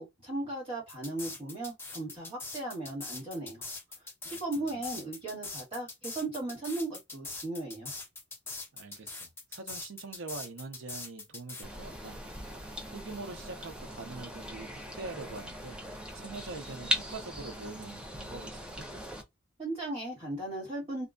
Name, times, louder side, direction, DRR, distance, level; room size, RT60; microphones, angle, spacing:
voice 1, 0.0-3.6 4.2-7.9 19.6-21.1, right 2 dB, 30° right, 1.4 m, -37 dB
sound 1, 0.9-11.6, left 3 dB, 10° left, 0.8 m, -42 dB
voice 2, 8.7-12.2 12.9-15.8 16.1-18.9, right 3 dB, 65° right, 0.6 m, -44 dB
sound 2, 11.6-19.2, left 1 dB, 5° right, 0.5 m, -39 dB
2.3 x 2.2 x 2.4 m
head